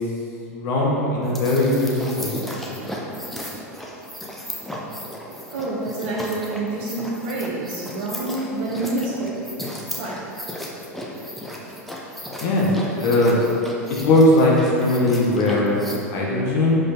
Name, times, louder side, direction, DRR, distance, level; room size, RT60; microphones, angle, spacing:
voice 1, 0.5-2.4 2.7-2.9 12.4-13.3 13.9-16.8, left 1 dB, 50° left, -4 dB, 1.2 m, -19 dB
sound 1, 1.2-16.0, equal, ahead, 0.9 m, -35 dB
voice 2, 5.3-9.5 10.0-10.2, right 2 dB, 55° right, -6 dB, 1.0 m, -28 dB
6.6 x 5.2 x 4.4 m, 2.7 s
figure-of-eight pair, 85°, 8 cm